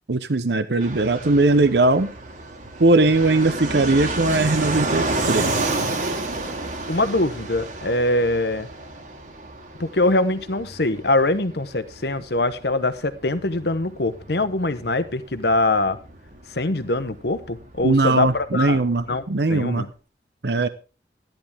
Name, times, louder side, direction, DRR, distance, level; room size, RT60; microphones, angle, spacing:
voice 1, 0.1-2.1 2.8-5.7 17.8-19.9 20.4-20.7, right 2 dB, 70° right, 12 dB, 0.8 m, -19 dB
Fixed-wing aircraft airplane, 0.8-19.2, right 2 dB, 45° right, 1.9 m, -31 dB
voice 2, 6.9-8.7 9.8-16.0 16.5-18.8 19.1-19.2 19.5-19.9, left 2 dB, 65° left, 12 dB, 1.1 m, -23 dB
14.0 x 10.5 x 3.5 m, 0.33 s
head